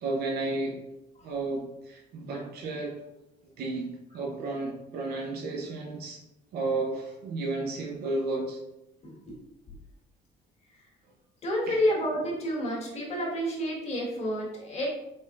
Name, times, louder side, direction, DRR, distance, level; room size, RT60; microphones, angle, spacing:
voice 1, 0.0-0.8 1.2-3.0 3.6-3.9 4.1-6.2 6.5-8.6 11.7-11.8, right 2 dB, 70° right, 0 dB, 0.7 m, -32 dB
voice 2, 11.4-14.9, equal, 40° left, -4 dB, 1.5 m, -29 dB
3.9 x 3.6 x 2.4 m, 0.90 s
cardioid pair, 110°, 17 cm